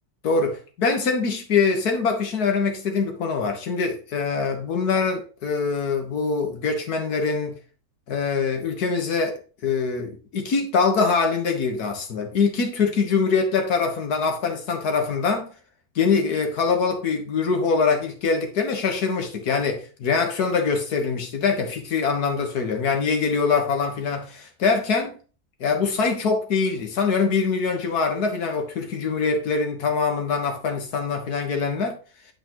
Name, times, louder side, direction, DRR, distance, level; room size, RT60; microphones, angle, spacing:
voice 1, 0.2-7.6 8.1-15.5 16.0-25.2 25.6-32.0, left 5 dB, 80° left, 1.8 m, -23 dB
10.0 x 5.0 x 3.0 m
omnidirectional pair, 1.6 m